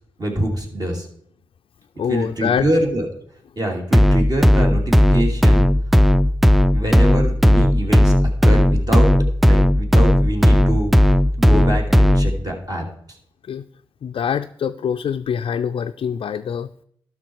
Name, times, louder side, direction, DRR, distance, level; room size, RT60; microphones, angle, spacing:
voice 1, 0.2-1.1 2.1-3.1 3.6-5.7 6.7-8.1 8.4-9.1 9.4-13.2, right 1 dB, 40° right, 1 dB, 2.7 m, -25 dB
voice 2, 2.0-2.7 13.5-13.6 14.0-16.7, left 8 dB, 65° left, 6 dB, 0.4 m, -24 dB
sound 1, 3.9-12.4, equal, ahead, 0.4 m, -15 dB
12.0 x 5.9 x 4.7 m, 0.68 s
supercardioid pair, 45°, 10 cm